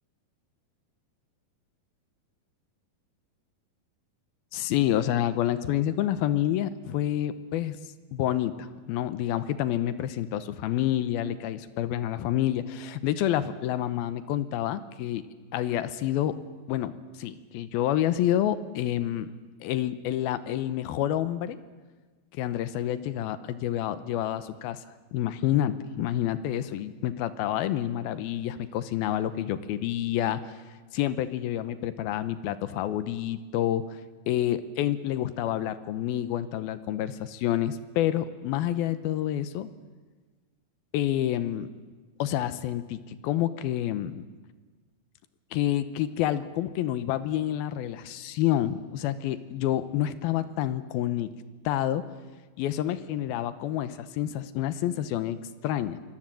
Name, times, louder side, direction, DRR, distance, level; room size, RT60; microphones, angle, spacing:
voice 1, 4.5-7.8 8.1-15.2 15.5-16.4 16.7-16.9 17.2-19.3 19.6-21.6 22.3-24.8 25.1-30.5 30.9-34.0 34.3-39.7 40.9-41.7 42.2-44.2 45.5-51.3 51.7-52.0 52.6-56.0, left 12 dB, 80° left, 12 dB, 2.8 m, -28 dB
26.0 x 21.0 x 7.7 m, 1.4 s
omnidirectional pair, 4.4 m